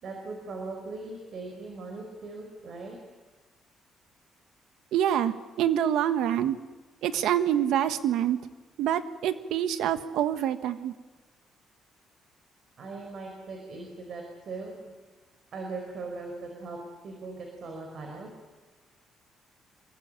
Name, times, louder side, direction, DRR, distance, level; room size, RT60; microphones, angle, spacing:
voice 1, 0.0-3.0 12.8-14.9 15.5-16.8 17.0-18.3, right 3 dB, 45° right, 2 dB, 4.9 m, -39 dB
voice 2, 4.9-6.6 7.0-8.4 8.8-10.9, right 10 dB, 85° right, 11 dB, 1.4 m, -26 dB
26.0 x 23.5 x 8.9 m, 1.2 s
cardioid pair, 180°, 0 cm